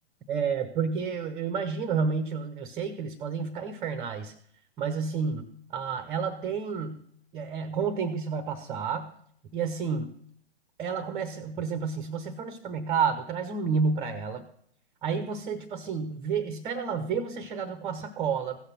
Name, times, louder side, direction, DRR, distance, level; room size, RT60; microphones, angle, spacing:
voice 1, 0.3-4.3 4.8-7.0 7.3-9.1 9.5-10.2 10.8-14.4 15.0-18.6, right 5 dB, 15° right, 10 dB, 0.6 m, -30 dB
15.5 x 6.6 x 5.8 m, 0.66 s
figure-of-eight pair, 115°, 34 cm